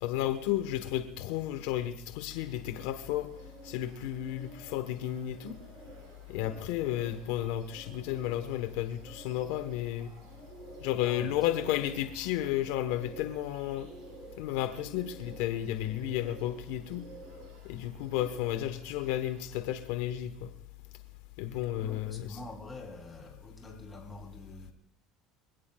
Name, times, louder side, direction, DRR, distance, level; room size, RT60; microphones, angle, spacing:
voice 1, 0.0-3.3 3.6-5.6 6.3-10.1 10.8-13.9 14.4-17.0 17.6-20.5 21.4-22.4, left 12 dB, 85° left, 9 dB, 1.1 m, -32 dB
Bird, 2.3-19.6, right 3 dB, 70° right, 4.8 m, -52 dB
voice 2, 11.0-11.3 21.8-24.7, left 1 dB, 15° left, 2 dB, 3.4 m, -46 dB
25.0 x 17.0 x 2.4 m, 0.74 s
supercardioid pair, 125°, 0 cm